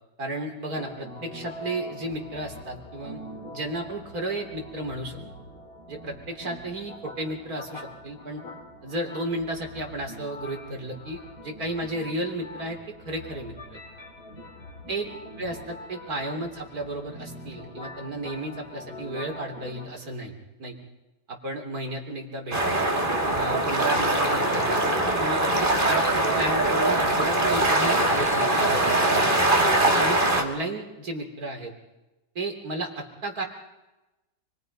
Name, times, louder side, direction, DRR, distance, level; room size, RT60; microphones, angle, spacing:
voice 1, 0.2-3.2 3.5-5.2 5.9-8.4 8.8-13.8 14.9-15.0 15.4-20.8 21.3-22.9 23.3-29.2 29.9-31.7 32.4-33.4, right 1 dB, 60° right, 2 dB, 3.9 m, -33 dB
sound 1, 0.7-19.9, left 1 dB, 65° left, 6.8 m, -43 dB
sound 2, 22.5-30.4, right 1 dB, 30° right, 2.6 m, -22 dB
29.0 x 22.5 x 5.5 m, 1.0 s
omnidirectional pair, 1.8 m